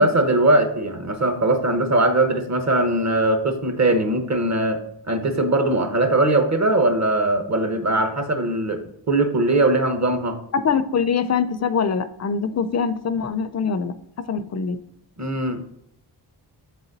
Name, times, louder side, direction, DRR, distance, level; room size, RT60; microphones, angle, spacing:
voice 1, 0.0-4.8 5.1-8.8 9.1-10.4 15.2-15.6, right 2 dB, 40° right, 7 dB, 1.0 m, -20 dB
voice 2, 10.5-13.9 14.3-14.8, left 6 dB, 40° left, 12 dB, 0.5 m, -23 dB
7.5 x 4.1 x 4.0 m, 0.73 s
cardioid pair, 70°, 44 cm